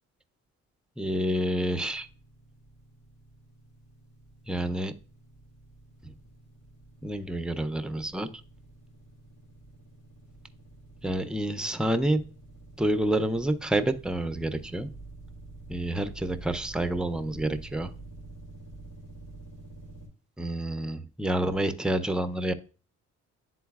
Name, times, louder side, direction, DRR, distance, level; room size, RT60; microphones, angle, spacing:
voice 1, 1.0-2.1 4.5-4.9 7.0-8.3 11.0-12.2 12.8-14.9 15.7-17.9 20.4-22.5, right 1 dB, 5° right, 9 dB, 0.5 m, -28 dB
sound 1, 1.5-20.1, right 2 dB, 85° left, 2.3 m, -49 dB
10.5 x 3.9 x 2.3 m, 0.36 s
cardioid pair, 90°, 30 cm